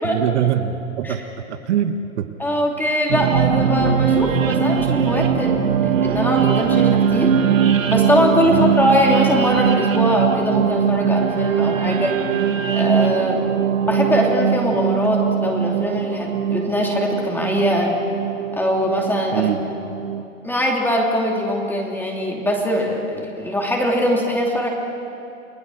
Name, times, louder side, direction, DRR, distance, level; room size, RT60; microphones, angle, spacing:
voice 1, 0.0-2.3 8.4-8.8 19.3-19.6, right 10 dB, 55° right, 8 dB, 1.4 m, -23 dB
voice 2, 2.4-7.3 7.9-12.2 12.7-13.4 13.8-17.9 18.5-19.5 20.4-24.7, equal, 5° left, -1 dB, 2.8 m, -21 dB
sound 1, 3.1-20.2, right 8 dB, 70° right, 1.8 m, -20 dB
29.5 x 19.0 x 6.4 m, 2.7 s
hypercardioid pair, 125°, 40 cm